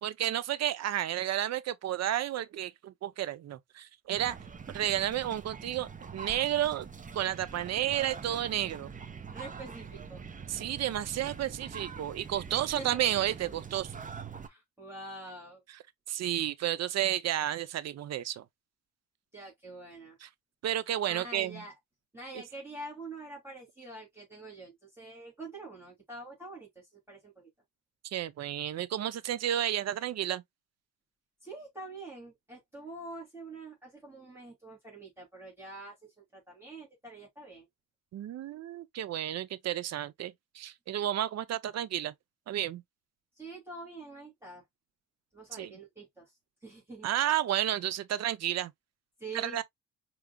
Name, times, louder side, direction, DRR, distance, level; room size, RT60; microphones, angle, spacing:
voice 1, 0.0-4.4 4.7-6.9 7.1-8.9 10.5-13.9 16.1-18.4 20.2-20.3 20.6-21.6 28.1-30.4 38.1-42.1 42.5-42.8 45.5-45.7 47.0-48.7 49.3-49.6, right 12 dB, 60° right, 0.6 m, -31 dB
sound 1, 4.1-14.5, right 6 dB, 25° right, 0.8 m, -44 dB
voice 2, 9.3-10.2 12.5-13.0 14.4-15.6 19.3-20.2 21.1-21.7 22.1-27.5 31.4-37.7 43.4-44.6 45.3-46.3 46.6-47.1 49.2-49.6, right 2 dB, 10° right, 2.7 m, -45 dB
4.9 x 3.0 x 2.2 m
cardioid pair, 90°, 30 cm